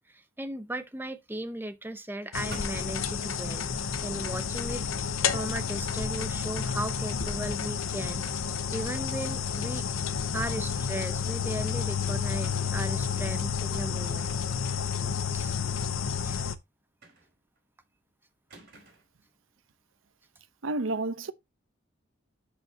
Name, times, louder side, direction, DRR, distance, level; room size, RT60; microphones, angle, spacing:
voice 1, 0.1-3.7 4.0-8.2 8.7-9.9 10.3-14.4 15.3-15.6 16.2-16.4, right 1 dB, 10° right, 0.7 m, -37 dB
sound 1, 2.3-16.6, left 6 dB, 90° left, 0.8 m, -30 dB
sound 2, 2.5-3.3 4.7-5.1 6.8-7.1 7.5-7.6 8.1-8.7 9.0-9.1 10.7-10.9 11.3-11.4 12.4-13.0 14.6-15.2 17.0-17.6 18.5-19.2, right 2 dB, 50° right, 4.7 m, -52 dB
voice 2, 20.6-21.3, right 2 dB, 80° right, 0.8 m, -30 dB
12.5 x 5.4 x 2.8 m
head